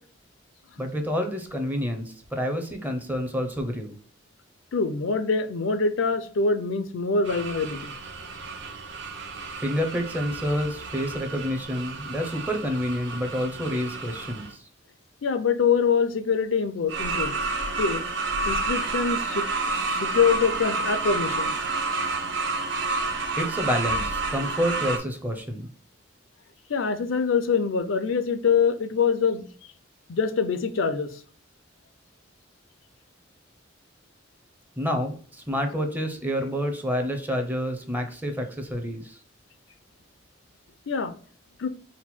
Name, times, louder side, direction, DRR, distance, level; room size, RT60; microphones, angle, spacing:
voice 1, 0.8-4.0 9.6-14.6 23.4-25.7 34.8-39.2, equal, 10° right, 0.6 m, -28 dB
voice 2, 4.7-7.9 15.2-17.3 17.8-18.0 18.5-21.5 26.7-29.4 30.1-31.2 40.9-41.1 41.6-41.7, left 5 dB, 70° left, 0.4 m, -24 dB
sound 1, 7.2-14.5 16.9-25.0, right 3 dB, 65° right, 0.8 m, -30 dB
4.2 x 2.2 x 4.2 m
head